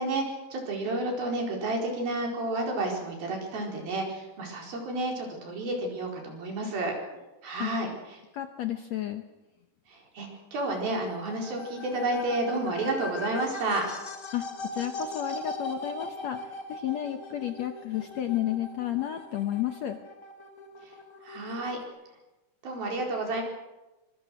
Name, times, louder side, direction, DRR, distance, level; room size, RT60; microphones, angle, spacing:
voice 1, 0.0-6.9 7.4-8.2 9.9-13.9 20.8-21.0 21.2-21.8 22.6-23.4, right 2 dB, 75° right, 1 dB, 6.3 m, -31 dB
voice 2, 8.3-9.2 14.3-20.0, left 12 dB, 70° left, 7 dB, 1.7 m, -32 dB
sound 1, 10.6-21.8, left 2 dB, 45° left, 1.0 m, -40 dB
24.5 x 23.0 x 6.4 m, 1.1 s
omnidirectional pair, 4.3 m